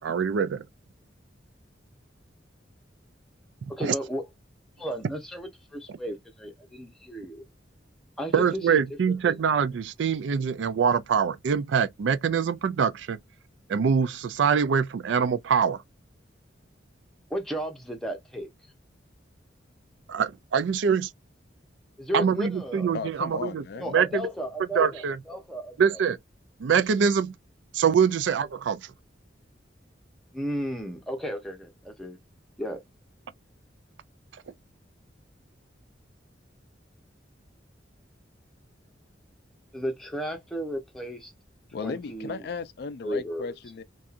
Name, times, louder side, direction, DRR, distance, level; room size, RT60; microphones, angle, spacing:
voice 1, 0.0-0.7 3.8-3.9 8.3-13.2 13.7-15.8 20.1-21.1 22.1-23.6 23.9-24.2 24.8-25.2 25.8-26.2 26.6-27.3 27.7-28.9, right 6 dB, 75° right, 0.4 m, -24 dB
voice 2, 3.7-4.2 4.8-7.4 8.2-8.8 9.2-9.4 17.3-18.5 22.0-22.9 23.8-26.0 30.3-32.2 32.6-32.8 39.7-41.3 41.8-42.4 43.0-43.5, equal, ahead, 0.7 m, -34 dB
voice 3, 22.9-24.0 41.7-43.8, left 5 dB, 60° left, 0.4 m, -35 dB
2.7 x 2.3 x 2.4 m
head